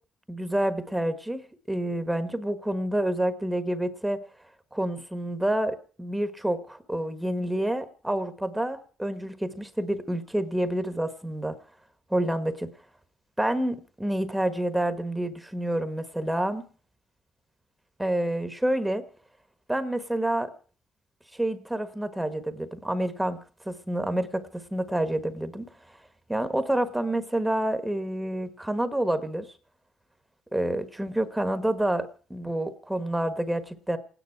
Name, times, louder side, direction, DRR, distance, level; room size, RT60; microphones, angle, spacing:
voice 1, 0.3-4.2 4.7-11.5 12.1-12.7 13.4-16.6 18.0-19.0 19.7-20.5 21.3-23.4 23.6-25.6 26.3-29.5 30.5-34.0, right 1 dB, 5° right, 10 dB, 1.3 m, -28 dB
28.5 x 9.9 x 4.6 m, 0.42 s
cardioid pair, 90°, 0 cm